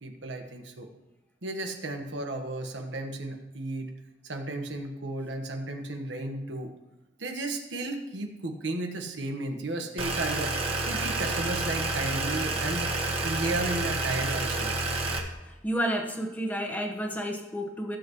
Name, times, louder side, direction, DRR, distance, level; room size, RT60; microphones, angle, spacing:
voice 1, 0.0-0.9 1.4-3.9 4.2-6.7 7.2-10.6 10.9-12.9 13.2-14.7, right 2 dB, 85° right, 3 dB, 1.3 m, -34 dB
sound 1, 10.0-15.2, right 2 dB, 30° right, 1.3 m, -29 dB
voice 2, 15.5-18.0, equal, 10° left, 1 dB, 1.1 m, -31 dB
15.5 x 7.6 x 3.1 m, 1.1 s
head